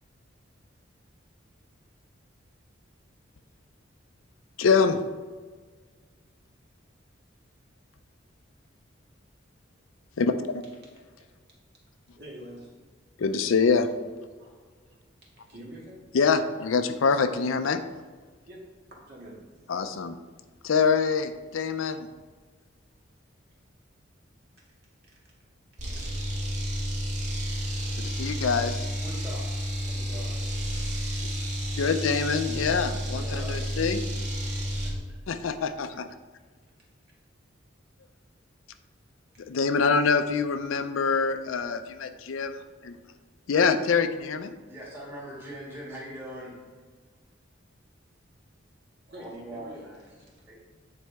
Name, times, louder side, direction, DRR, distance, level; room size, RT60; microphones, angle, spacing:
voice 1, 4.6-5.0 10.2-10.6 13.2-13.9 16.1-17.8 19.7-20.2 20.6-22.1 28.0-28.9 31.7-34.0 35.3-36.1 39.5-42.5 43.5-44.5, left 5 dB, 85° left, 9 dB, 0.5 m, -25 dB
voice 2, 12.2-12.7 14.4-14.5 15.5-16.0 18.5-19.5 26.0-26.1 37.1-37.2 49.1-49.9 50.2-50.4, right 1 dB, 55° right, -4 dB, 2.0 m, -45 dB
sound 1, 25.8-35.0, equal, 35° right, 1.3 m, -31 dB
voice 3, 29.0-29.5 29.8-30.4 33.1-33.8 44.7-46.7 49.2-50.1 50.5-50.6, equal, 10° right, -6 dB, 2.0 m, -41 dB
9.3 x 4.2 x 3.5 m, 1.5 s
head